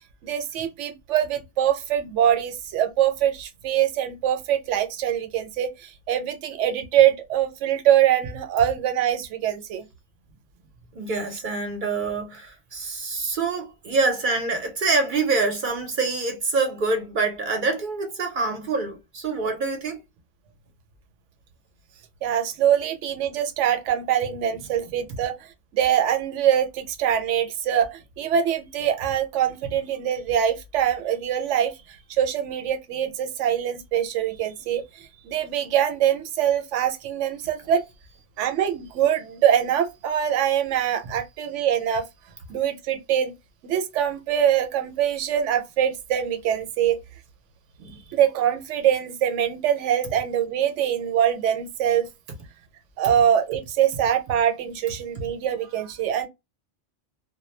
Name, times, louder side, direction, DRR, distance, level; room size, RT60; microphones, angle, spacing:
voice 1, 0.2-9.9 22.2-25.4 25.7-31.7 32.1-37.8 38.4-42.1 42.5-43.3 43.6-47.0 48.1-52.1 53.0-56.3, right 10 dB, 80° right, 0.9 m, -23 dB
voice 2, 11.0-20.0 47.8-48.0, right 3 dB, 55° right, 0.6 m, -26 dB
2.2 x 2.1 x 3.1 m
omnidirectional pair, 1.2 m